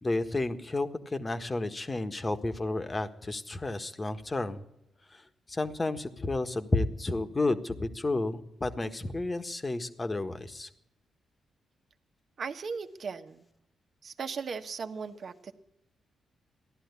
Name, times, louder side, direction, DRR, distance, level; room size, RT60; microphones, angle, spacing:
voice 1, 0.0-4.6 5.1-10.7, left 2 dB, 30° left, 10 dB, 1.5 m, -31 dB
voice 2, 12.4-13.4 14.0-15.5, right 5 dB, 60° right, 8 dB, 1.3 m, -37 dB
15.5 x 11.5 x 8.3 m, 0.83 s
supercardioid pair, 55°, 0 cm